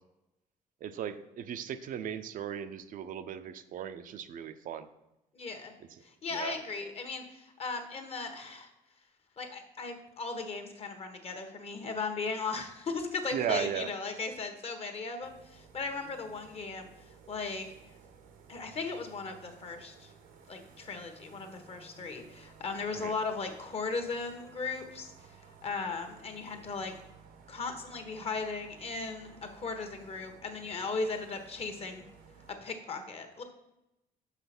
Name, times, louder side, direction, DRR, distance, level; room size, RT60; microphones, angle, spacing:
voice 1, 0.8-4.9 6.3-6.6 13.3-13.9 23.0-23.2, right 9 dB, 65° right, 10 dB, 0.6 m, -36 dB
voice 2, 5.3-5.7 6.2-8.7 9.4-16.9 17.3-17.7 18.5-20.1 20.5-25.1 25.6-26.9 27.5-32.1 32.5-33.4, left 4 dB, 40° left, 6 dB, 1.3 m, -37 dB
sound 1, 15.2-32.5, right 6 dB, 85° right, 1.1 m, -56 dB
6.1 x 5.7 x 6.0 m, 0.91 s
cardioid pair, 90°, 15 cm